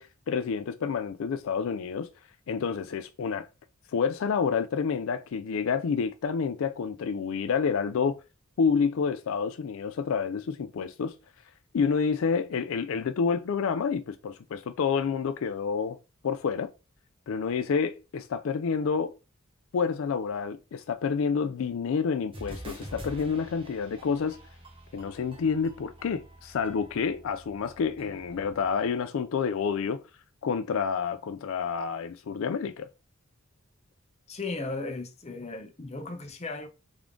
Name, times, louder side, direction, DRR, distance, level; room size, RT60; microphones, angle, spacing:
voice 1, 0.0-2.1 2.5-3.5 3.9-8.2 8.6-11.2 11.7-16.0 16.2-16.7 17.3-19.2 19.7-24.4 24.9-30.0 30.4-32.9, left 6 dB, 70° left, 0.4 m, -29 dB
sound 1, 22.3-28.9, right 1 dB, 25° right, 1.1 m, -46 dB
voice 2, 34.3-36.7, left 3 dB, 30° left, 0.7 m, -36 dB
3.6 x 3.5 x 3.6 m
head